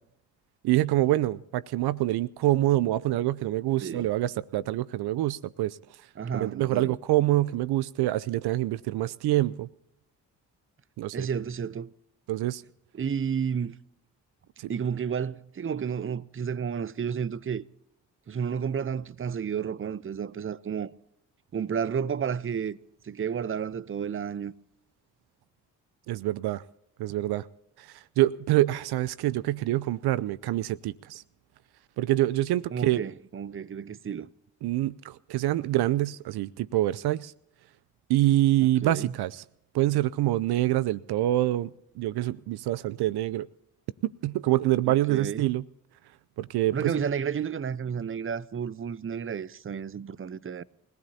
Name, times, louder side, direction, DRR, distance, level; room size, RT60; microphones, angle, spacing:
voice 1, 0.6-5.8 6.3-9.7 11.0-11.3 12.3-12.6 14.6-14.7 26.1-26.6 27.0-27.5 27.8-31.2 32.0-33.0 34.6-37.3 38.1-39.4 39.7-41.7 42.0-43.5 44.0-45.6 46.4-46.9, right 15 dB, 70° right, 0.6 m, -26 dB
voice 2, 6.2-6.9 11.1-11.9 12.9-13.8 14.7-17.7 18.3-20.9 21.5-22.8 23.0-24.5 32.7-34.3 38.6-39.1 44.9-45.5 46.7-50.6, right 7 dB, 30° right, 0.7 m, -31 dB
29.5 x 15.5 x 2.8 m
hypercardioid pair, 45°, 41 cm